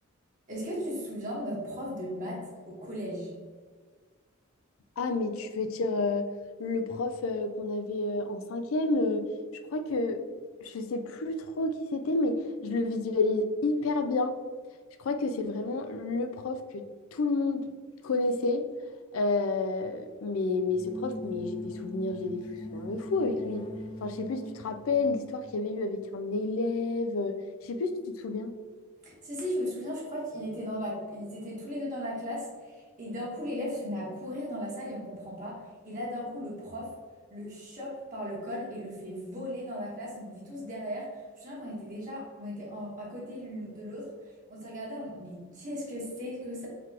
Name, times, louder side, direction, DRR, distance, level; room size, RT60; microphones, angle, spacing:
voice 1, 0.5-3.3 29.0-36.9 37.3-44.1 44.5-46.7, equal, 40° right, -6 dB, 1.3 m, -37 dB
voice 2, 5.0-6.3 6.6-9.3 9.5-10.2 10.6-14.3 15.0-16.8 17.1-17.7 18.0-18.7 19.1-23.7 24.0-28.6, left 3 dB, 85° left, 9 dB, 0.4 m, -30 dB
sound 1, 20.7-25.4, equal, 25° left, 0.5 m, -42 dB
3.9 x 2.9 x 4.6 m, 1.5 s
head